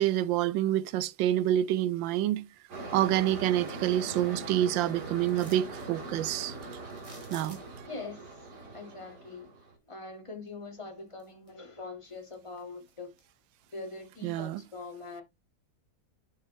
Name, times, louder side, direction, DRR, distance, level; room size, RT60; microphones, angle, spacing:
voice 1, 0.0-2.5 2.9-6.5 7.3-7.6 14.2-14.6, right 12 dB, 85° right, 1.3 m, -27 dB
sound 1, 2.7-9.8, right 2 dB, 60° right, 2.7 m, -41 dB
sound 2, 5.3-5.9 6.9-7.9 10.5-10.6 11.1-11.8 12.1-13.2 13.7-13.8, right 2 dB, 20° right, 1.3 m, -52 dB
voice 2, 7.9-8.3 8.7-9.5 9.9-13.1 13.7-15.2, left 3 dB, 15° left, 1.8 m, -43 dB
6.7 x 6.1 x 3.1 m
omnidirectional pair, 2.0 m